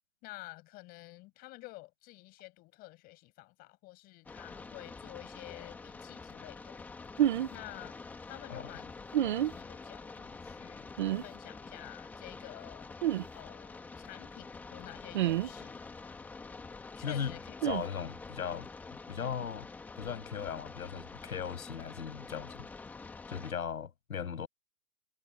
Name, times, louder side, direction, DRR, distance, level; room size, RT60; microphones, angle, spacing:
voice 1, 0.2-6.8 7.5-8.0 8.3-13.0 13.3-15.8 17.0-17.5, left 21 dB, 20° left, 7.8 m, -50 dB
sound 1, 4.3-23.5, left 4 dB, 5° left, 1.6 m, -47 dB
sound 2, 7.2-7.5 9.1-9.5 11.0-11.2 13.0-13.2 15.1-15.5 17.6-17.8, right 12 dB, 35° right, 1.2 m, -28 dB
voice 2, 17.0-17.3 17.6-18.7 19.1-19.7 20.0-22.7 23.3-24.5, left 7 dB, 80° left, 7.8 m, -38 dB
hypercardioid pair, 170°, 42 cm